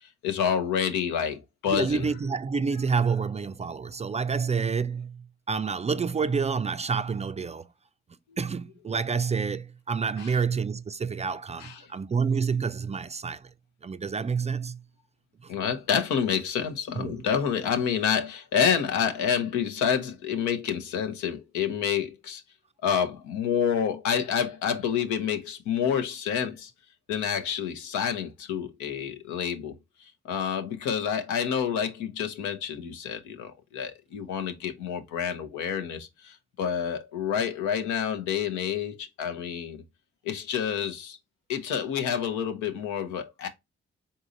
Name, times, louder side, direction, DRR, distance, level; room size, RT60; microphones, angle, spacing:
voice 1, 0.2-2.1 10.2-10.3 11.6-11.8 15.5-22.4 22.8-26.7 27.1-29.7 30.2-39.8 40.2-41.2 41.5-43.5, left 8 dB, 80° left, 0.7 m, -28 dB
voice 2, 1.7-7.7 8.4-13.5 13.8-14.8 17.0-17.2, right 5 dB, 25° right, 0.3 m, -28 dB
3.9 x 3.7 x 2.5 m
hypercardioid pair, 40°, 29 cm